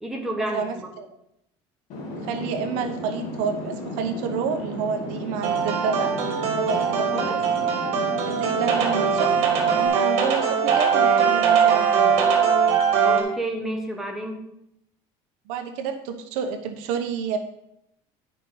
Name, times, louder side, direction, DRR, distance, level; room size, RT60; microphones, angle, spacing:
voice 1, 0.0-0.9 13.0-14.4, right 1 dB, 5° right, 0 dB, 1.4 m, -30 dB
voice 2, 0.5-1.1 2.2-6.1 6.5-7.4 8.3-9.3 9.7-12.2 15.5-17.4, right 6 dB, 85° right, 7 dB, 1.0 m, -29 dB
sound 1, 1.9-9.9, left 1 dB, 65° left, 2.2 m, -34 dB
sound 2, 5.4-13.2, right 6 dB, 65° right, 1.7 m, -21 dB
10.5 x 5.3 x 3.9 m, 0.81 s
cardioid pair, 145°, 12 cm